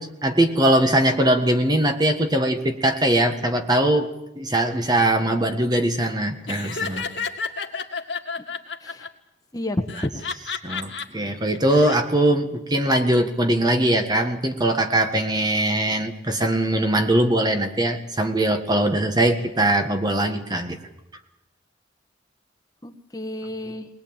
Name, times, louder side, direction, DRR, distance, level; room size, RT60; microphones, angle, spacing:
voice 1, 0.0-4.1 4.3-7.1 10.6-20.8, right 1 dB, 20° right, 6 dB, 1.5 m, -21 dB
Laughter, 6.5-9.1 9.9-11.1 11.5-12.0, left 5 dB, 75° left, 2.0 m, -31 dB
voice 2, 9.5-10.2 22.8-23.9, left 1 dB, 20° left, 6 dB, 1.3 m, -30 dB
20.5 x 20.5 x 8.9 m, 0.90 s
head